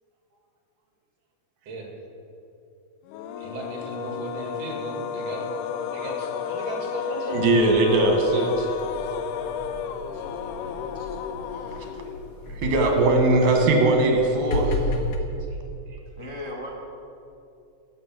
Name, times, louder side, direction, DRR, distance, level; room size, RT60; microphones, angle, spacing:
sound 1, 3.1-12.4, left 7 dB, 85° left, 2.2 m, -32 dB
voice 1, 3.4-5.5 5.9-7.4 10.1-10.2 15.9-16.0, right 3 dB, 55° right, 0 dB, 3.0 m, -36 dB
voice 2, 7.3-8.7 11.8-12.0 12.5-14.9, right 2 dB, 75° right, 2 dB, 2.9 m, -20 dB
sound 2, 7.5-15.2, left 1 dB, 65° left, 1.8 m, -34 dB
voice 3, 16.1-16.7, left 1 dB, 35° left, -3 dB, 0.4 m, -36 dB
12.5 x 6.5 x 7.5 m, 2.7 s
omnidirectional pair, 3.7 m